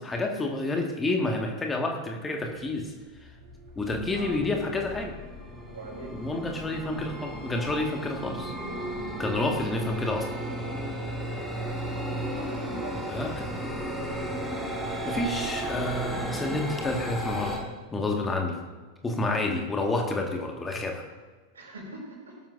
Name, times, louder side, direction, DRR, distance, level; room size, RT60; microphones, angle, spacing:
voice 1, 0.0-2.9 3.2-3.3 3.7-5.1 6.1-8.5 9.2-10.3 13.1-13.5 15.0-17.6 17.9-18.6 19.0-21.0, left 2 dB, 15° left, 2 dB, 1.7 m, -29 dB
sound 1, 2.6-2.7 3.1-17.6, right 1 dB, ahead, 4.0 m, -34 dB
voice 2, 5.7-6.2 8.8-9.1 12.3-13.0 21.5-22.4, right 2 dB, 70° right, 0 dB, 4.8 m, -41 dB
19.0 x 13.0 x 2.6 m, 1.4 s
figure-of-eight pair, 90°, 0 cm